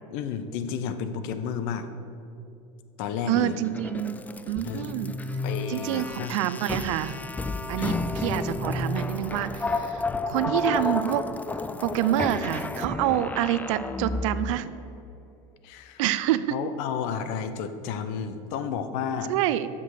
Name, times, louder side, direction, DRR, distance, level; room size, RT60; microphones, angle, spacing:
voice 1, 0.1-1.9 3.0-3.5 4.6-4.9 5.4-6.4 7.8-8.0 15.6-16.0 16.5-19.3, left 7 dB, 65° left, 10 dB, 0.8 m, -32 dB
sound 1, 3.3-14.6, left 3 dB, 10° left, 0.3 m, -31 dB
voice 2, 3.3-4.2 4.5-5.2 5.7-7.2 7.7-11.3 11.8-14.7 16.0-16.5 19.3-19.7, right 13 dB, 75° right, 14 dB, 0.5 m, -27 dB
7.4 x 6.2 x 6.5 m, 2.7 s
supercardioid pair, 110°, 16 cm